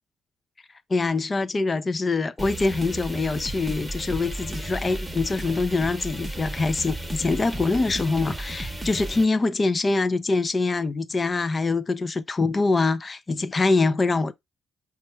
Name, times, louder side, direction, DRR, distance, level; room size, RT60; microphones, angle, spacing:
voice 1, 0.9-14.3, left 3 dB, 30° left, 0.5 m, -24 dB
sound 1, 2.4-9.3, right 1 dB, 5° right, 0.9 m, -34 dB
5.3 x 2.4 x 4.2 m
cardioid pair, 90°, 0 cm